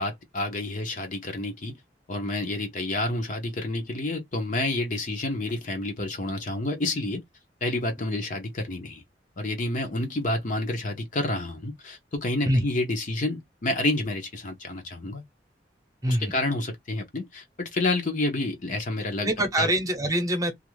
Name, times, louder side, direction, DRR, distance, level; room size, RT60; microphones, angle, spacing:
voice 1, 0.0-1.7 2.1-7.2 7.6-9.0 9.4-15.2 16.1-19.3 19.6-19.7, left 2 dB, 45° left, 0.8 m, -29 dB
voice 2, 16.0-16.3 19.2-20.5, right 1 dB, 20° right, 0.9 m, -24 dB
2.6 x 2.5 x 3.1 m
head